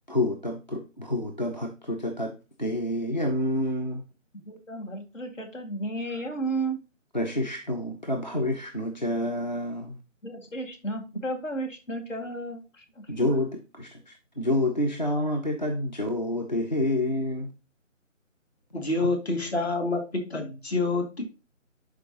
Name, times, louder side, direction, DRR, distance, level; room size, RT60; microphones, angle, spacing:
voice 1, 0.1-4.0 7.1-10.0 13.1-17.5, left 1 dB, 35° left, 0.6 m, -28 dB
voice 2, 4.3-6.8 10.2-13.1, right 2 dB, 70° left, 2.1 m, -33 dB
voice 3, 18.7-21.2, left 2 dB, 55° left, 2.3 m, -27 dB
11.5 x 4.6 x 2.8 m
figure-of-eight pair, 170°, 39 cm